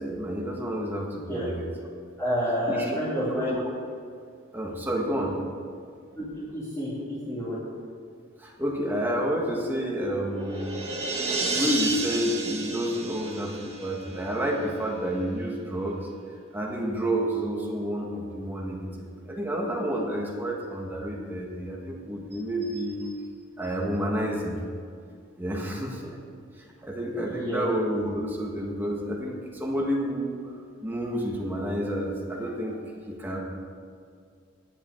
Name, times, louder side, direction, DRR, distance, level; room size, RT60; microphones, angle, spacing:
voice 1, 0.0-1.7 2.7-3.0 3.2-3.6 4.5-5.4 8.4-10.7 11.4-16.1 16.5-18.9 19.2-23.1 23.6-24.6 25.4-26.2 26.8-30.4 30.8-33.4, equal, 10° right, -2 dB, 1.5 m, -30 dB
voice 2, 2.2-3.6 6.1-6.2 6.5-7.6 27.4-27.7, equal, 10° left, -12 dB, 2.9 m, -29 dB
sound 1, 10.0-14.4, right 3 dB, 30° right, 1.6 m, -32 dB
10.5 x 6.9 x 8.3 m, 2.3 s
head